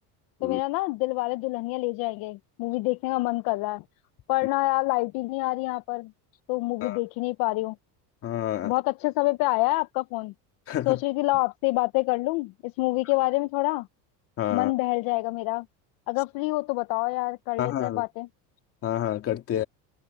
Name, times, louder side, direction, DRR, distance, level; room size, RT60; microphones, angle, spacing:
voice 1, 0.4-3.8 4.3-6.1 6.5-7.7 8.6-10.3 10.9-13.9 14.5-15.6 16.1-18.3, left 22 dB, 60° left, 0.9 m, -27 dB
voice 2, 8.2-8.7 10.7-11.0 14.4-14.7 17.6-18.0 18.8-19.6, left 11 dB, 35° left, 2.2 m, -29 dB
cardioid pair, 155°, 39 cm